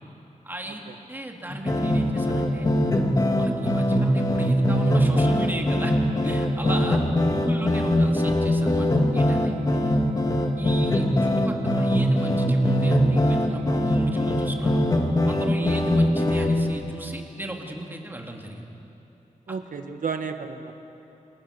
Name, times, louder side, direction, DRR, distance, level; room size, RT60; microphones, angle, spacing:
voice 1, 0.4-2.7 3.4-5.9 6.2-9.6 10.6-14.9 15.3-18.7, right 1 dB, 15° right, 1 dB, 3.1 m, -36 dB
sound 1, 1.5-16.7, equal, 30° left, 2.3 m, -22 dB
voice 2, 9.7-10.0 15.6-15.8 19.5-20.7, right 5 dB, 85° right, 7 dB, 1.6 m, -33 dB
28.5 x 28.5 x 6.9 m, 3.0 s
wide cardioid pair, 135°, 14 cm